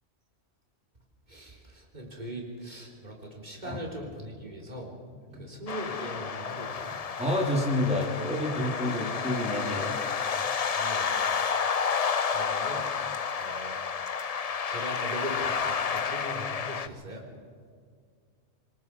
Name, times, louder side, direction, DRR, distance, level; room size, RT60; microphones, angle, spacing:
voice 1, 1.3-4.9 5.4-6.9 10.8-11.1 12.3-12.8 13.4-13.8 14.7-17.2, right 1 dB, 35° right, -1 dB, 3.8 m, -40 dB
sound 1, 5.7-16.9, left 6 dB, 40° left, 0.6 m, -30 dB
voice 2, 7.2-10.0, left 1 dB, 5° right, -3 dB, 3.7 m, -29 dB
26.5 x 22.0 x 4.8 m, 2.1 s
omnidirectional pair, 1.2 m